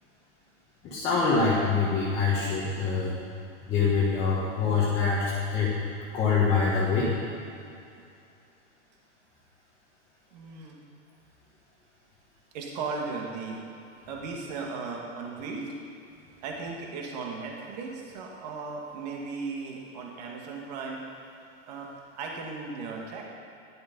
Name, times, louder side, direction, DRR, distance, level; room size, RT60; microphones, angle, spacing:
voice 1, 0.8-3.2 3.7-5.7 6.1-7.1, left 4 dB, 15° left, -7 dB, 1.5 m, -25 dB
voice 2, 10.3-10.8 12.5-13.6 14.1-15.7 16.4-21.0 21.7-21.9 22.2-23.2, right 4 dB, 35° right, -1 dB, 2.0 m, -36 dB
15.0 x 11.5 x 5.4 m, 2.5 s
supercardioid pair, 180°, 36 cm